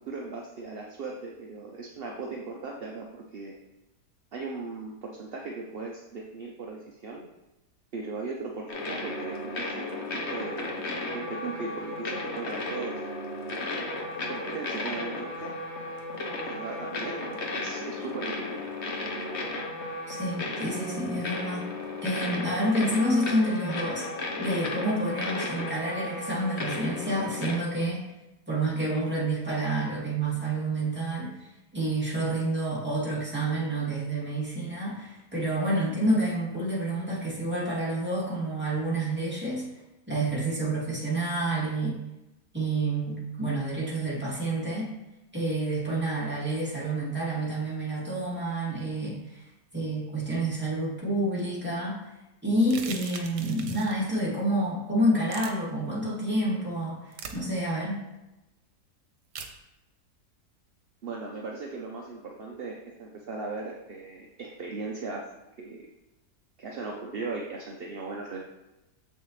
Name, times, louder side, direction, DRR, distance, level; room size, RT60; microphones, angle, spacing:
voice 1, 0.1-3.5 4.3-7.2 7.9-10.7 11.1-13.0 14.3-15.5 16.3-18.5 61.0-65.3 65.6-65.8 66.6-68.4, right 3 dB, 50° right, -1 dB, 0.7 m, -38 dB
sound 1, 8.7-27.6, left 2 dB, 45° left, 1.2 m, -34 dB
voice 2, 20.1-21.6 22.0-24.1 24.4-28.0 28.5-31.5 31.7-39.6 40.1-42.0 42.5-44.9 45.3-49.4 49.7-52.0 52.4-58.0, right 1 dB, 5° right, -8 dB, 2.6 m, -28 dB
sound 2, 52.6-54.0 55.3-55.5 57.1-57.4 59.3-59.5, right 6 dB, 90° right, 1.4 m, -40 dB
7.2 x 6.6 x 3.2 m, 0.98 s
omnidirectional pair, 1.8 m